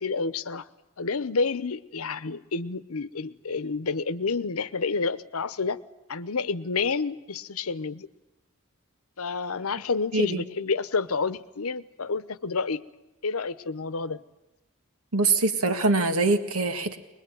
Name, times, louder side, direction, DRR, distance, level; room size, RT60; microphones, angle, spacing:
voice 1, 0.0-0.6 1.0-5.8 6.1-8.1 9.2-12.8 13.2-14.2, left 4 dB, 90° left, 15 dB, 0.9 m, -29 dB
voice 2, 10.1-10.4 15.1-17.0, right 3 dB, 85° right, 8 dB, 1.9 m, -23 dB
22.5 x 21.0 x 9.2 m, 0.99 s
head